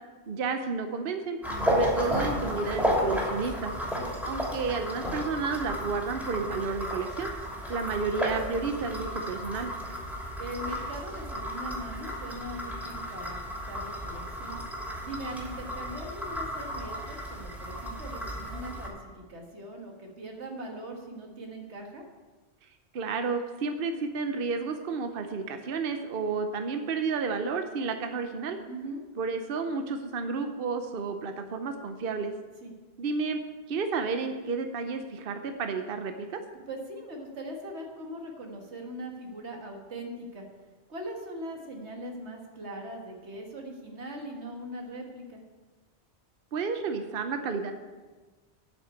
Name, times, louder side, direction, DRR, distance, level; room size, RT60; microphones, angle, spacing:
voice 1, 0.3-1.4 1.7-3.7 4.2-7.3 7.7-9.7 22.9-28.6 29.2-32.3 33.0-33.4 33.7-36.4 46.5-47.7, right 4 dB, 60° right, 7 dB, 0.9 m, -31 dB
sound 1, 1.4-18.9, equal, ahead, 2.8 m, -33 dB
voice 2, 10.4-14.6 15.0-22.0 28.7-29.0 32.6-32.7 36.7-40.4 40.9-45.4, right 1 dB, 90° right, 1 dB, 1.9 m, -40 dB
8.8 x 6.2 x 8.1 m, 1.3 s
omnidirectional pair, 1.1 m